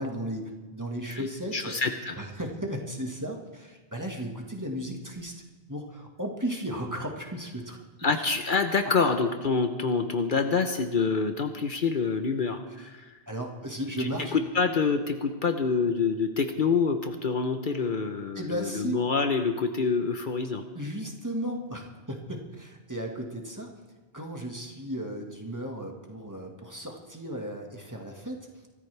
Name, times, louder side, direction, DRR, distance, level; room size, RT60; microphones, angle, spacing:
voice 1, 0.0-1.8 2.2-5.4 5.7-8.1 12.8-12.9 13.3-14.4 18.4-19.0 20.7-23.7 24.1-28.7, right 1 dB, 20° right, 1 dB, 1.7 m, -35 dB
voice 2, 1.5-2.2 8.0-13.1 14.0-20.6, left 5 dB, 55° left, 7 dB, 1.1 m, -27 dB
24.5 x 13.5 x 3.4 m, 1.3 s
omnidirectional pair, 1.0 m